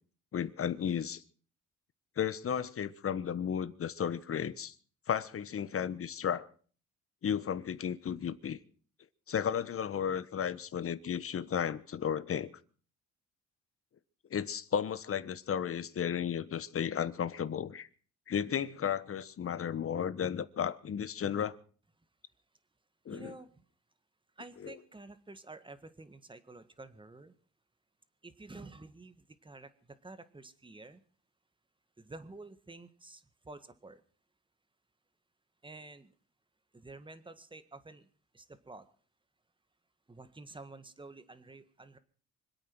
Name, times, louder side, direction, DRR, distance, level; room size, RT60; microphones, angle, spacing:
voice 1, 0.3-1.2 2.2-4.7 5.1-6.5 7.2-8.6 9.3-12.5 14.3-17.9 18.3-21.5 23.0-23.3 24.6-24.7, left 8 dB, 50° left, 1.2 m, -34 dB
voice 2, 23.1-23.7 24.4-27.3 28.2-31.0 32.0-34.0 35.6-36.1 36.7-38.1 38.3-38.9 40.1-42.0, right 2 dB, 15° right, 1.7 m, -50 dB
25.5 x 8.8 x 6.2 m
cardioid pair, 90°, 30 cm